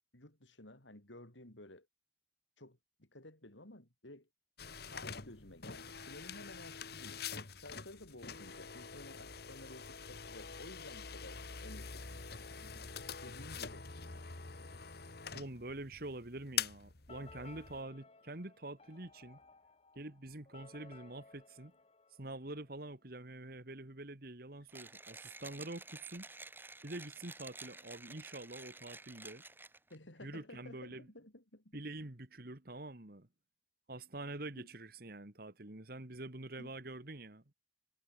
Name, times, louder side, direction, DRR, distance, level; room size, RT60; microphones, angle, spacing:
voice 1, 0.1-1.9 2.6-4.3 4.9-7.2 7.5-12.3 13.2-13.9 29.9-31.8 34.5-34.7 36.6-36.7, left 1 dB, 75° left, 5.0 m, -54 dB
sound 1, 4.6-17.8, left 7 dB, 55° left, 1.7 m, -45 dB
voice 2, 15.3-19.4 20.0-21.7 22.2-26.3 26.8-29.4 30.2-31.1 31.7-33.3 33.9-37.5, right 2 dB, 50° right, 1.9 m, -46 dB
sound 2, 17.1-22.8, left 3 dB, 30° left, 1.1 m, -59 dB
Mechanisms, 24.7-30.0, right 3 dB, 10° right, 2.6 m, -51 dB
head